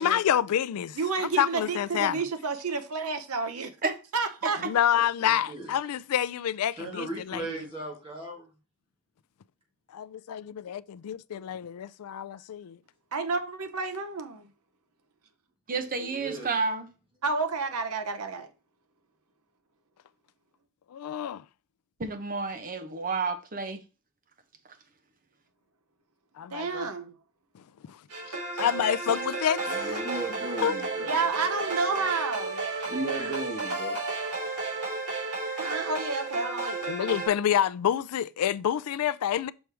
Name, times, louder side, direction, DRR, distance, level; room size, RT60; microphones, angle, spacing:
voice 1, 0.0-2.2 4.6-7.6 9.9-12.8 20.9-21.4 26.4-26.9 27.9-28.0 28.3-30.2 30.6-30.8 36.9-39.5, left 9 dB, 75° left, 0.4 m, -28 dB
voice 2, 1.0-3.7 4.1-4.6 13.1-14.5 17.2-18.5 26.5-27.2 31.0-32.6 35.6-36.8, right 4 dB, 70° right, 0.8 m, -30 dB
voice 3, 4.9-5.7 6.7-8.5 16.0-16.6 29.7-31.1 32.7-34.0 35.4-35.6, right 2 dB, 25° right, 1.5 m, -37 dB
voice 4, 15.7-16.9 22.0-23.8, right 4 dB, 40° right, 0.9 m, -30 dB
sound 1, 28.1-37.3, right 3 dB, 85° right, 3.1 m, -32 dB
6.3 x 4.5 x 3.4 m
head